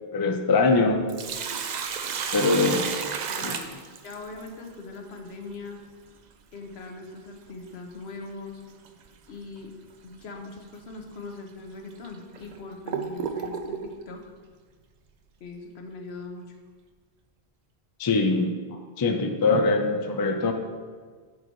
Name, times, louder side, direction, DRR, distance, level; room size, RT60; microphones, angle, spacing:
voice 1, 0.1-1.0 2.3-2.8 3.4-3.5 18.0-18.6 19.0-20.5, left 3 dB, 30° left, 4 dB, 0.4 m, -22 dB
Sink (filling or washing), 0.9-4.5 6.9-7.0 8.8-9.1 9.6-9.7 10.4-10.6 11.3-11.4 12.0-13.9, right 6 dB, 55° right, 0.5 m, -32 dB
voice 2, 3.0-3.7 4.0-5.8 6.5-8.6 9.3-9.7 10.0-14.2 15.4-16.5 18.7-18.9, left 3 dB, 70° left, 3 dB, 1.1 m, -41 dB
8.2 x 4.0 x 4.6 m, 1.6 s
omnidirectional pair, 1.1 m